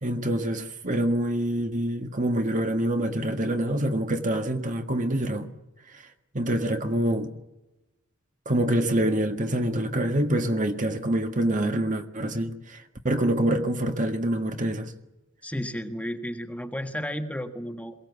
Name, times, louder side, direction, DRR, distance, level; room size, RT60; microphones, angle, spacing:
voice 1, 0.0-5.5 6.3-7.3 8.4-14.9, right 1 dB, 40° right, 1.6 m, -26 dB
voice 2, 15.4-17.9, equal, 5° left, 1.5 m, -33 dB
22.5 x 17.5 x 8.2 m
head